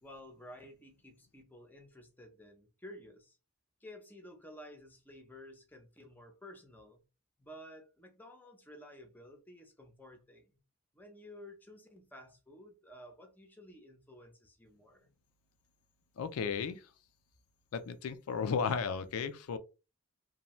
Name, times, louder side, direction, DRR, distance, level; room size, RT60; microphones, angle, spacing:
voice 1, 0.0-3.4 3.8-7.0 7.4-10.6 10.9-15.1, left 1 dB, 10° left, 0.6 m, -53 dB
voice 2, 16.2-16.8 17.7-19.6, left 6 dB, 85° left, 0.4 m, -34 dB
2.6 x 2.1 x 3.0 m
head